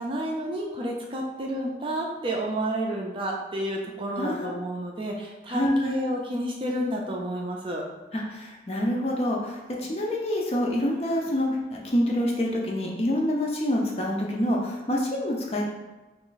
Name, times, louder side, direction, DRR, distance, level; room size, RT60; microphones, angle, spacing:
voice 1, 0.0-7.8, right 1 dB, 30° right, -1 dB, 0.4 m, -30 dB
voice 2, 4.2-4.5 5.5-6.0 8.1-15.6, left 1 dB, 35° left, -1 dB, 0.5 m, -26 dB
2.9 x 2.5 x 3.9 m, 1.2 s
head